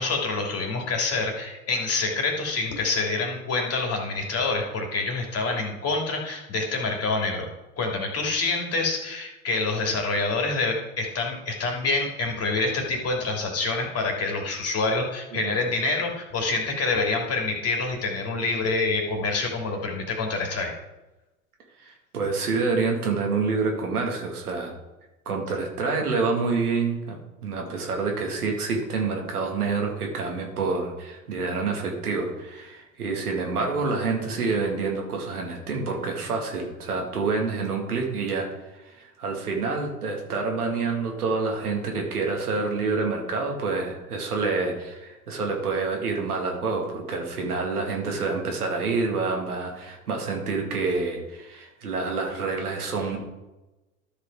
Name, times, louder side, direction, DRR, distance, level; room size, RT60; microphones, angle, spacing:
voice 1, 0.0-7.5 7.8-20.7, left 3 dB, 35° left, 2 dB, 2.8 m, -27 dB
voice 2, 21.8-24.7 25.3-27.2 27.4-38.5 38.7-53.2, right 4 dB, 85° right, 1 dB, 2.3 m, -27 dB
13.0 x 5.2 x 4.8 m, 1.0 s
hypercardioid pair, 85°, 44 cm